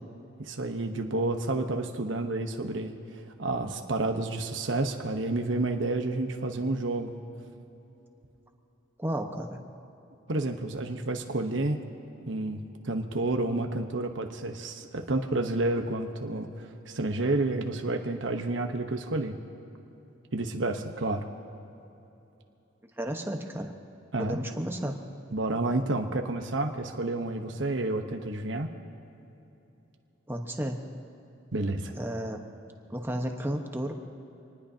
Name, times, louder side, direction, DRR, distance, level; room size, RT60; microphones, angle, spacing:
voice 1, 0.4-3.0 3.4-7.2 10.3-11.8 12.2-19.3 20.3-21.2 24.1-24.4 25.3-28.7 31.5-31.9, right 2 dB, 85° right, 4 dB, 1.1 m, -30 dB
voice 2, 9.0-9.6 23.0-23.7 24.2-24.9 30.3-30.8 32.0-32.4 32.9-33.9, equal, 10° right, 3 dB, 1.2 m, -32 dB
26.0 x 19.5 x 2.9 m, 3.0 s
head